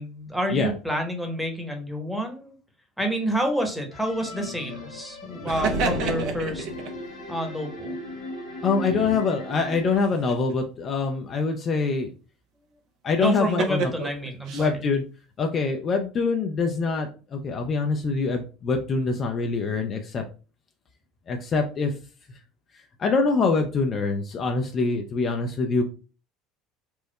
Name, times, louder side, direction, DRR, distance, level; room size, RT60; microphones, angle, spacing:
voice 1, 0.0-2.6 3.0-6.7 7.3-7.9 8.9-9.1 13.2-14.8, right 1 dB, ahead, 3 dB, 1.0 m, -29 dB
sound 1, 3.9-10.0, left 1 dB, 70° left, 1.1 m, -37 dB
sound 2, 5.5-6.9 9.9-10.5 13.2-14.7, right 4 dB, 55° right, 0.5 m, -30 dB
sound 3, 5.5-7.1, equal, 75° right, 1.2 m, -31 dB
voice 2, 8.6-12.1 13.0-13.9 14.5-15.0 15.4-20.2 21.3-21.9 23.0-25.8, left 4 dB, 40° left, 3 dB, 0.5 m, -24 dB
4.4 x 2.1 x 2.2 m, 0.35 s
figure-of-eight pair, 65°, 0 cm